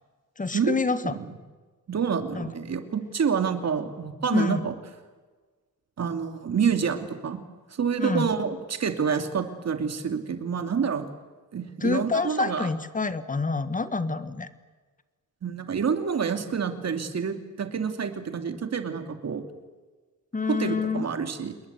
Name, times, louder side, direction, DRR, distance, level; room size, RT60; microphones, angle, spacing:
voice 1, 0.4-1.2 2.3-2.5 4.3-4.6 8.0-8.3 11.8-14.5 20.3-21.1, left 4 dB, 25° left, 12 dB, 1.5 m, -27 dB
voice 2, 1.9-4.8 6.0-7.4 7.7-11.1 11.5-12.7 15.4-19.4 20.5-21.5, right 6 dB, 50° right, 7 dB, 2.7 m, -28 dB
27.5 x 21.5 x 8.3 m, 1.3 s
wide cardioid pair, 140°, 33 cm